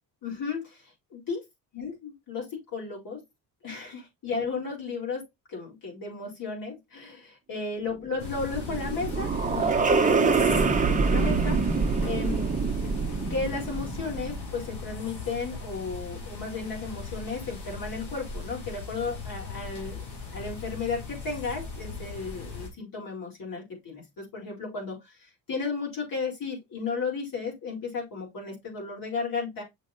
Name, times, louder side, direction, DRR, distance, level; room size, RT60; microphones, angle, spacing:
voice 1, 0.2-1.4 1.7-3.2 3.6-11.6 12.0-12.4 13.3-20.0 20.3-29.6, left 4 dB, 55° left, 4.1 m, -34 dB
sound 1, 8.1-14.6, right 4 dB, 20° right, 1.1 m, -25 dB
sound 2, 8.2-22.7, left 4 dB, 80° left, 3.6 m, -39 dB
6.5 x 6.1 x 2.7 m
cardioid pair, 105°, 39 cm